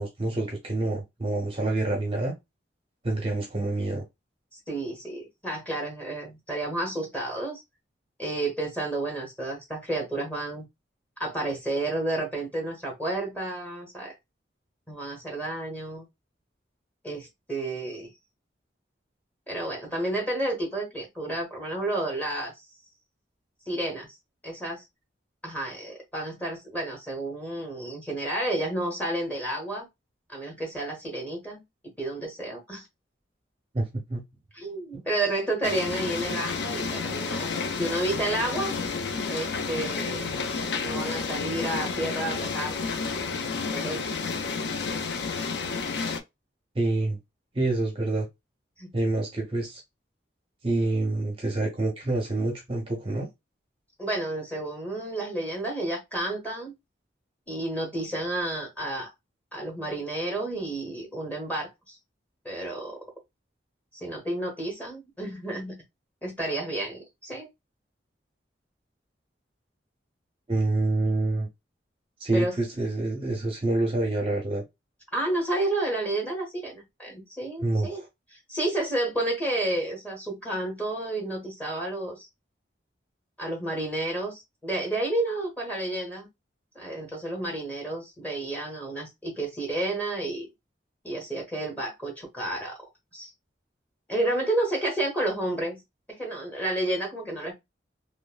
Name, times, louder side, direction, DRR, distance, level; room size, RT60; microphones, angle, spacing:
voice 1, 0.0-2.3 3.0-4.0 33.7-34.2 34.9-35.0 46.8-47.2 47.5-48.3 48.9-49.8 50.6-53.3 70.5-71.5 72.2-74.6 77.6-78.1, right 2 dB, 30° right, 0.6 m, -27 dB
voice 2, 4.5-7.6 8.2-10.7 11.2-14.1 14.9-16.0 17.0-18.1 19.5-22.5 23.7-24.1 24.4-24.8 25.4-29.9 30.3-31.6 32.0-32.9 34.5-38.7 39.3-42.9 43.7-44.2 48.8-48.9 54.0-56.7 57.5-59.1 59.5-62.0 62.4-63.0 63.9-65.8 66.2-67.5 72.3-72.6 75.1-78.0 78.3-82.3 83.4-86.3 86.7-90.5 91.0-92.8 93.1-93.3 94.1-95.8 96.1-97.5, right 2 dB, 10° left, 1.1 m, -31 dB
sound 1, 35.6-46.2, left 4 dB, 70° left, 0.5 m, -31 dB
3.1 x 2.2 x 2.3 m
head